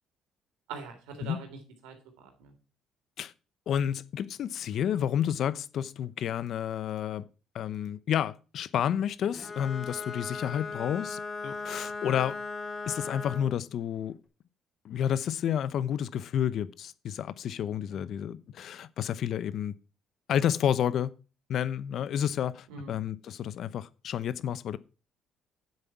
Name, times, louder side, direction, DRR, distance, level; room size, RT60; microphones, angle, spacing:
voice 1, 0.7-2.5 17.9-18.2 22.7-23.0, right 4 dB, 90° right, 3.2 m, -44 dB
voice 2, 3.7-7.3 7.5-12.4 12.9-14.2 14.8-19.8 20.3-21.1 21.5-24.8, left 9 dB, 65° left, 0.8 m, -30 dB
Bowed string instrument, 9.3-13.6, left 4 dB, 30° left, 3.3 m, -38 dB
9.7 x 7.9 x 4.7 m
supercardioid pair, 80°, 0 cm